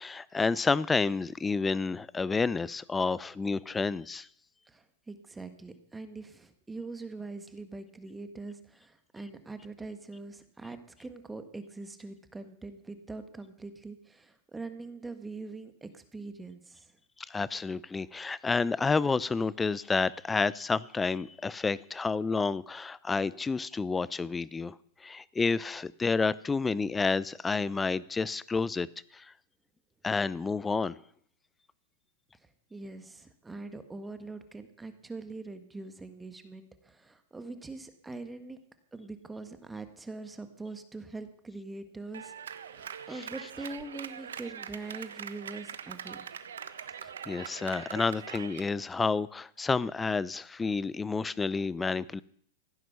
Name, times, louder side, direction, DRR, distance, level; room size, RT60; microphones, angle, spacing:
voice 1, 0.0-4.3 17.3-24.7 25.0-28.9 29.1-29.3 30.0-31.0 47.3-52.2, left 4 dB, 15° left, 0.5 m, -30 dB
voice 2, 4.7-16.9 32.4-38.6 38.9-46.3, right 3 dB, 10° right, 1.5 m, -43 dB
Clapping, 42.1-48.7, right 8 dB, 85° right, 1.2 m, -42 dB
15.5 x 9.4 x 6.8 m
hypercardioid pair, 125°, 0 cm